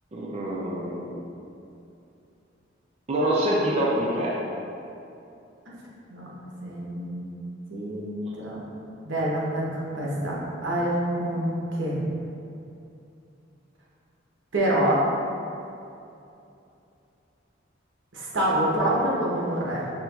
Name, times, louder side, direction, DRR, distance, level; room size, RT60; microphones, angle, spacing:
voice 1, 0.1-1.2 3.1-4.4, right 1 dB, 35° right, -4 dB, 0.4 m, -26 dB
voice 2, 6.6-7.3 7.7-8.6 9.0-10.4 10.6-12.0 14.5-15.0 18.1-19.9, right 1 dB, 85° right, -5 dB, 0.9 m, -26 dB
5.6 x 3.0 x 2.3 m, 2.7 s
head